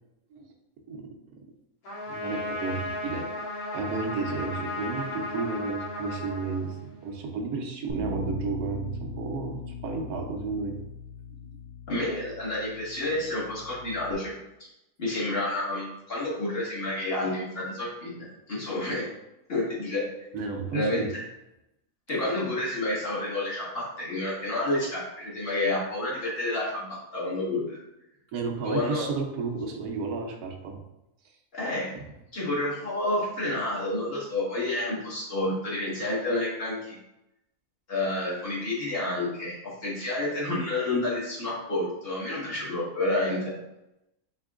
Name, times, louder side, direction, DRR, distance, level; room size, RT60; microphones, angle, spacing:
Trumpet, 1.8-7.1, left 1 dB, 75° left, 1.9 m, -35 dB
voice 1, 2.1-3.3 3.7-10.8 11.3-11.5 20.3-21.1 28.3-30.8 31.9-32.0, right 4 dB, 75° right, 3 dB, 1.2 m, -32 dB
Bass guitar, 7.9-14.1, left 2 dB, 55° right, 0.4 m, -39 dB
voice 2, 11.9-14.7 15.0-19.1 19.5-20.0 20.7-21.0 22.1-27.8 28.6-29.1 31.5-31.9 32.3-37.0 37.9-43.5, left 2 dB, 40° left, -6 dB, 1.7 m, -29 dB
4.4 x 4.2 x 2.4 m, 0.89 s
omnidirectional pair, 1.6 m